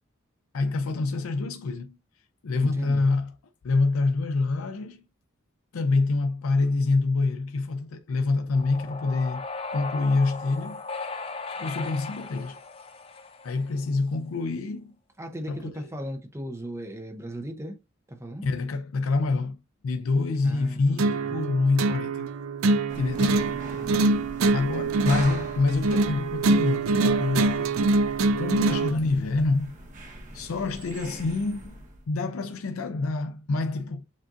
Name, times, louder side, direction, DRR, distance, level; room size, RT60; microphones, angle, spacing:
voice 1, 0.5-2.0 2.4-3.3 3.6-5.0 5.7-9.5 9.7-10.8 11.6-12.6 13.4-14.9 15.5-15.9 18.4-19.6 19.8-22.3 22.9-23.4 24.5-27.7 28.4-29.7 30.3-31.7 32.1-34.0, left 3 dB, 85° left, 0.5 m, -26 dB
voice 2, 2.6-3.1 15.2-17.8 18.1-18.5 20.4-21.4, right 1 dB, 15° right, 0.7 m, -37 dB
sound 1, 8.5-13.8, left 4 dB, 25° left, 0.5 m, -37 dB
sound 2, 21.0-29.0, right 3 dB, 80° right, 0.4 m, -24 dB
sound 3, 22.9-32.1, right 1 dB, 35° right, 1.1 m, -42 dB
7.3 x 2.5 x 2.4 m
head